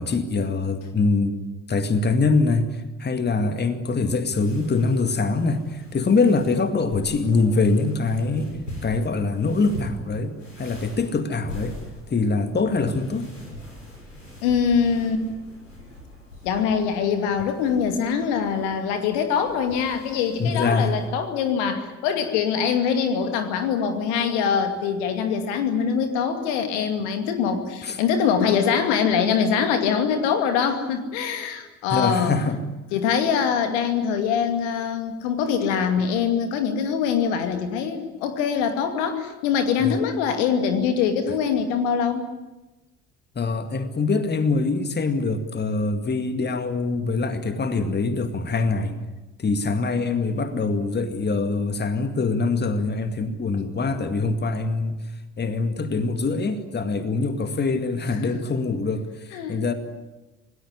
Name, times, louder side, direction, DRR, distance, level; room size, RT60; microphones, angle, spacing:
voice 1, 0.0-1.4 1.7-8.6 8.8-11.8 12.1-13.3 20.4-21.0 27.8-28.0 31.9-32.6 39.8-40.0 43.4-49.0 49.4-55.0 55.4-59.7, left 3 dB, 25° left, 9 dB, 2.2 m, -24 dB
sound 1, 4.3-21.1, left 1 dB, 85° left, 5.8 m, -42 dB
voice 2, 14.4-15.2 16.4-32.4 32.9-42.3 59.3-59.7, left 7 dB, 65° left, 7 dB, 2.6 m, -23 dB
27.0 x 18.5 x 9.9 m, 1.1 s
figure-of-eight pair, 50°, 37 cm